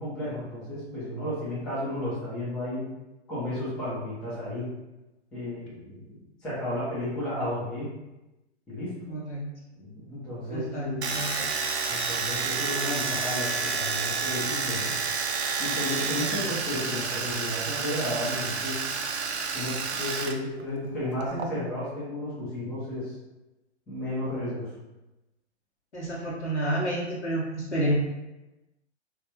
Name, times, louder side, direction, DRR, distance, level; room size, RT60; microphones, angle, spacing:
voice 1, 0.0-2.8 3.3-4.7 5.3-7.9 8.7-8.9 9.8-11.3 11.9-14.9 15.6-18.8 19.5-23.1 23.9-24.7, left 1 dB, 5° left, -9 dB, 0.4 m, -33 dB
voice 2, 9.1-9.5 10.5-11.5 16.0-16.3 25.9-27.9, right 1 dB, 85° left, -5 dB, 0.8 m, -30 dB
Domestic sounds home sounds, 11.0-20.4 20.6-21.5, right 5 dB, 70° right, 0.5 m, -30 dB
3.2 x 2.3 x 2.8 m, 1.0 s
figure-of-eight pair, 110°, 34 cm